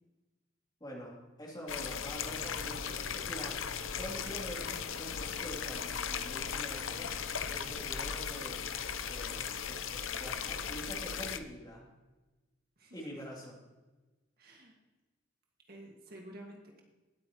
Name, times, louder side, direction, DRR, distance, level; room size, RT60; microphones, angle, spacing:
voice 1, 0.8-3.7 4.0-7.1 7.5-8.6 9.0-11.9 12.9-13.6, equal, 20° left, -3 dB, 2.9 m, -46 dB
sound 1, 1.7-11.4, left 7 dB, 85° left, 0.8 m, -37 dB
voice 2, 14.4-14.7 15.7-16.8, right 1 dB, 50° right, 0 dB, 1.9 m, -51 dB
19.5 x 8.7 x 3.0 m, 1.2 s
head